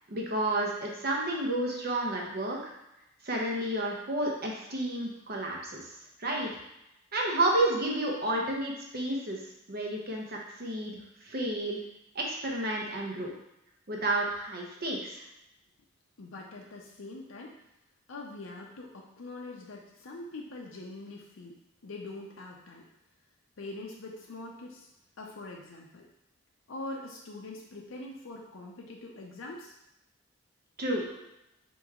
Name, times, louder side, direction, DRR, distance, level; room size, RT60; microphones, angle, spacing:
voice 1, 0.1-2.7 3.2-5.9 6.2-6.5 7.1-9.4 9.7-11.0 11.2-11.8 12.1-13.3 13.9-15.2 30.8-31.0, right 1 dB, 50° right, -1 dB, 0.9 m, -31 dB
voice 2, 16.2-17.6 18.1-21.6 21.8-22.9 23.6-24.9 25.2-26.1 26.7-29.7 31.0-31.2, left 2 dB, 85° left, -1 dB, 0.7 m, -43 dB
4.6 x 3.0 x 3.6 m, 0.87 s
head